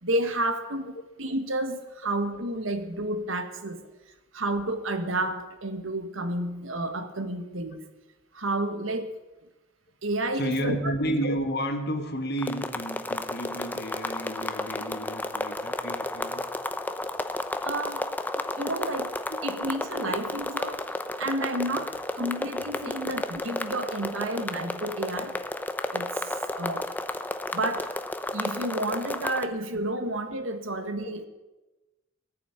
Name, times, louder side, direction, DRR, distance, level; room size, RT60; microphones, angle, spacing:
voice 1, 0.0-3.8 4.3-7.8 8.3-9.2 10.0-10.9 17.6-18.1 18.6-19.1 19.4-20.8 21.2-25.4 25.9-26.9 27.5-28.0 28.3-31.2, right 1 dB, 85° right, 8 dB, 1.5 m, -31 dB
voice 2, 10.3-16.4 18.4-18.7 19.5-19.6 22.8-23.1 30.0-30.1, equal, 55° left, 4 dB, 2.1 m, -32 dB
sound 1, 12.4-29.5, left 1 dB, 10° left, 0.7 m, -32 dB
19.5 x 7.1 x 9.9 m, 1.1 s
head